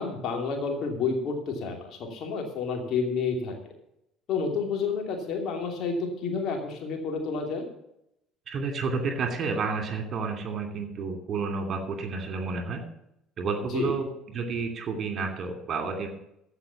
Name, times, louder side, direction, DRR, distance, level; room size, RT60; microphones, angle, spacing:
voice 1, 0.0-3.5 4.3-7.6 13.7-13.9, left 4 dB, 50° left, 2 dB, 2.8 m, -30 dB
voice 2, 8.5-12.8 13.4-16.1, right 4 dB, 40° right, 5 dB, 2.7 m, -30 dB
15.0 x 5.8 x 7.2 m, 0.79 s
figure-of-eight pair, 55°, 0 cm